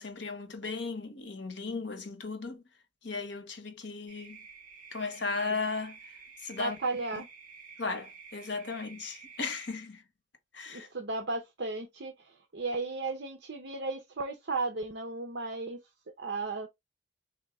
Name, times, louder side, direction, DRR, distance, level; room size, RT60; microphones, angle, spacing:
voice 1, 0.0-2.6 3.0-4.4 4.9-6.0 6.4-6.8 7.8-10.0 10.5-10.9, left 4 dB, 65° left, 1.0 m, -36 dB
sound 1, 4.1-9.7, right 5 dB, 40° right, 1.9 m, -51 dB
voice 2, 6.6-7.3 10.7-15.8 16.2-16.7, right 3 dB, 60° right, 0.8 m, -35 dB
3.6 x 2.7 x 4.7 m
head